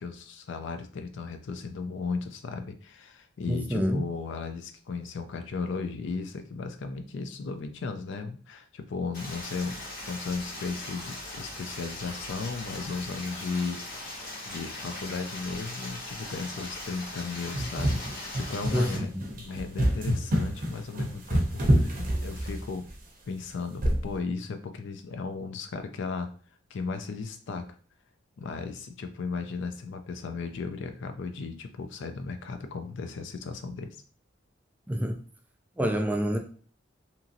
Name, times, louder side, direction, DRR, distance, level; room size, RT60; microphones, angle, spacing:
voice 1, 0.0-9.8 10.1-18.0 18.3-19.1 19.4-21.9 22.2-22.9 23.3-26.3 26.7-27.7 28.4-34.0, left 4 dB, 65° left, 0.4 m, -35 dB
voice 2, 3.5-4.0 18.7-19.2 34.9-35.2 35.8-36.4, equal, 10° right, 0.3 m, -27 dB
Stream, 9.1-19.0, left 1 dB, 50° left, 1.1 m, -39 dB
sound 1, 17.5-22.9 23.8-24.1, equal, 45° right, 0.6 m, -27 dB
2.9 x 2.6 x 2.5 m
head